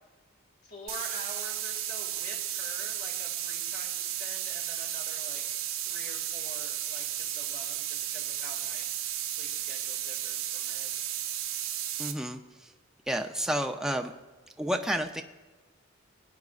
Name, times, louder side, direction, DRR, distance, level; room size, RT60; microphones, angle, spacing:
voice 1, 0.6-5.4 5.8-8.9 9.2-11.0, left 1 dB, 55° left, 0 dB, 2.4 m, -47 dB
sound 1, 0.9-12.1, right 11 dB, 85° right, 0.9 m, -34 dB
voice 2, 12.0-12.7 13.1-14.1 14.6-15.2, equal, 5° right, 4 dB, 0.5 m, -30 dB
21.5 x 9.4 x 2.5 m, 1.2 s
head